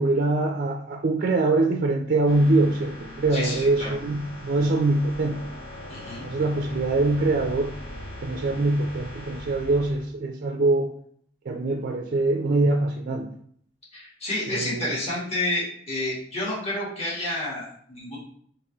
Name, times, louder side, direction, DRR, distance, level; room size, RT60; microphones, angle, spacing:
voice 1, 0.0-5.4 6.2-7.7 8.2-10.9 11.5-13.3 14.5-14.9, right 2 dB, 45° right, 3 dB, 0.3 m, -23 dB
sound 1, 2.3-10.0, left 1 dB, 65° left, 1.0 m, -40 dB
voice 2, 3.3-4.0 5.9-6.2 13.9-18.2, left 1 dB, 35° left, -7 dB, 1.5 m, -30 dB
3.5 x 2.9 x 3.0 m, 0.62 s
head